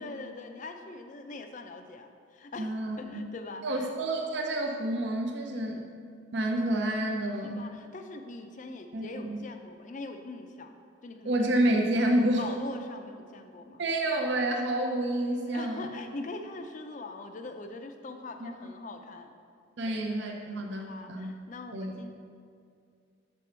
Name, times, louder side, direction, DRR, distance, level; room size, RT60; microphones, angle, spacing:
voice 1, 0.0-3.9 5.5-5.9 7.4-10.7 11.0-11.3 12.4-13.8 15.5-19.3 19.9-22.1, left 3 dB, 40° left, 6 dB, 0.4 m, -42 dB
voice 2, 2.6-3.2 3.6-5.9 6.3-7.7 8.9-9.4 11.2-12.5 13.8-15.9 18.4-18.5 19.8-21.3 21.7-21.9, right 1 dB, 55° right, 1 dB, 0.6 m, -29 dB
7.6 x 5.3 x 4.3 m, 2.3 s
head